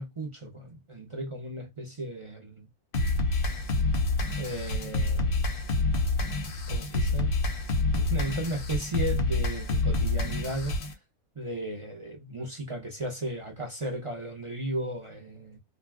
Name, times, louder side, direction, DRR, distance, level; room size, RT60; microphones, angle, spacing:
voice 1, 0.0-2.7 4.4-5.5 6.7-7.4 7.9-10.8 11.4-15.6, right 1 dB, 35° right, 0.5 m, -35 dB
sound 1, 2.9-10.9, left 2 dB, 55° left, 0.7 m, -27 dB
2.4 x 2.2 x 3.3 m
omnidirectional pair, 1.5 m